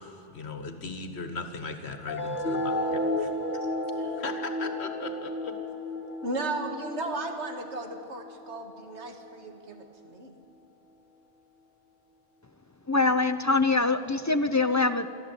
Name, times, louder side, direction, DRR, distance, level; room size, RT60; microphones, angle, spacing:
voice 1, 0.0-3.3 4.1-5.6, left 3 dB, 65° left, 8 dB, 1.7 m, -38 dB
sound 1, 2.1-9.1, left 1 dB, 45° left, 1.7 m, -33 dB
voice 2, 6.2-10.3, right 2 dB, 75° right, 5 dB, 2.0 m, -35 dB
voice 3, 12.9-15.1, left 3 dB, 25° left, 10 dB, 0.4 m, -24 dB
24.5 x 13.0 x 8.3 m, 2.6 s
omnidirectional pair, 1.2 m